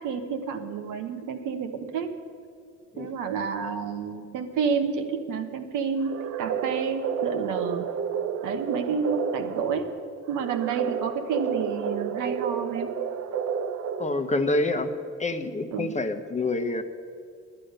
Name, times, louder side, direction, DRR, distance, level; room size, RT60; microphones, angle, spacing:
voice 1, 0.0-2.1 3.0-6.1 6.4-7.9 8.4-9.9 10.3-12.9 15.7-15.9, right 6 dB, 90° right, 6 dB, 1.0 m, -30 dB
sound 1, 6.0-14.4, right 7 dB, 60° right, 0.7 m, -31 dB
voice 2, 14.0-14.9 15.2-16.8, left 2 dB, 25° left, 8 dB, 0.8 m, -27 dB
10.0 x 9.7 x 6.5 m, 2.3 s
cardioid pair, 90°, 30 cm